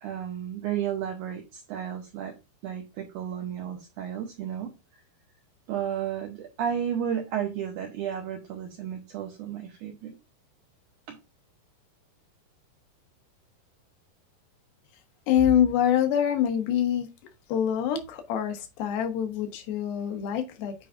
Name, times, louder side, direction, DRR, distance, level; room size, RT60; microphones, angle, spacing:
voice 1, 0.0-2.4 2.6-4.7 5.7-10.2 11.1-11.2, right 9 dB, 85° right, 1.7 m, -33 dB
voice 2, 15.3-17.1 17.5-20.7, left 9 dB, 75° left, 2.9 m, -25 dB
9.7 x 4.9 x 2.4 m
omnidirectional pair, 4.6 m